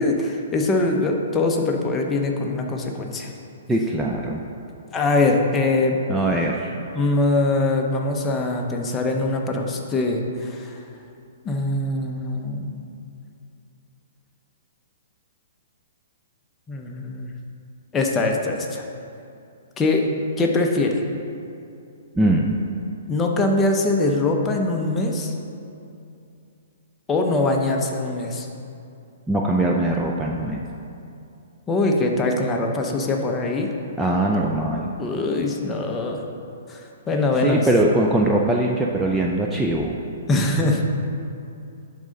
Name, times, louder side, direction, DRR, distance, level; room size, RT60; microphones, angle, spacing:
voice 1, 0.0-3.3 4.9-6.0 6.9-10.7 11.4-12.7 16.7-17.3 17.9-18.8 19.8-21.0 23.1-25.3 27.1-28.5 31.7-33.7 35.0-36.2 36.7-36.8 37.1-37.7 40.3-40.8, left 2 dB, 15° left, 1 dB, 0.8 m, -22 dB
voice 2, 3.7-4.4 6.1-6.7 22.2-22.5 29.3-30.6 34.0-34.9 37.4-40.0, right 1 dB, 10° right, -1 dB, 0.4 m, -21 dB
10.5 x 3.8 x 5.2 m, 2.6 s
hypercardioid pair, 135°, 0 cm